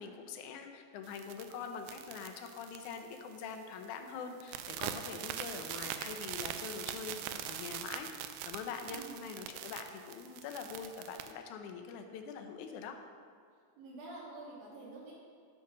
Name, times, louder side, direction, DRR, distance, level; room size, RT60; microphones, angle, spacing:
voice 1, 0.0-8.1 8.4-13.0, left 6 dB, 75° left, 5 dB, 2.0 m, -44 dB
sound 1, 1.1-3.6 3.8-4.1 4.4-11.3, right 10 dB, 90° right, 2.4 m, -42 dB
voice 2, 8.9-9.2 13.8-15.1, right 2 dB, 50° right, -6 dB, 3.5 m, -47 dB
11.5 x 6.0 x 6.1 m, 2.2 s
omnidirectional pair, 4.1 m